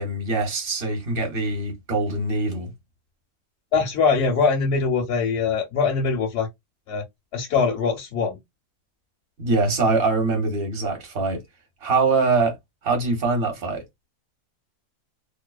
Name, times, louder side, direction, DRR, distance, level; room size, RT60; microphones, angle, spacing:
voice 1, 0.0-2.7 9.4-11.4 11.8-12.6 12.8-13.8, right 3 dB, 45° right, 0.9 m, -23 dB
voice 2, 3.7-6.5 6.9-7.0 7.3-8.4, left 5 dB, 60° left, 0.7 m, -22 dB
2.6 x 2.1 x 2.2 m
omnidirectional pair, 1.6 m